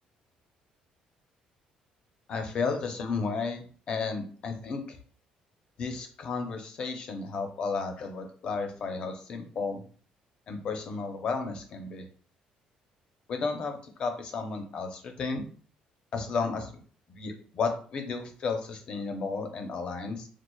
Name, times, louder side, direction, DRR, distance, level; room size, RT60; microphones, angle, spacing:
voice 1, 2.3-5.0 5.8-9.9 10.5-12.0 13.3-15.5 16.1-16.7 17.1-20.3, left 4 dB, 40° left, 5 dB, 0.6 m, -33 dB
4.4 x 2.4 x 2.3 m, 0.43 s
cardioid pair, 175°, 3 cm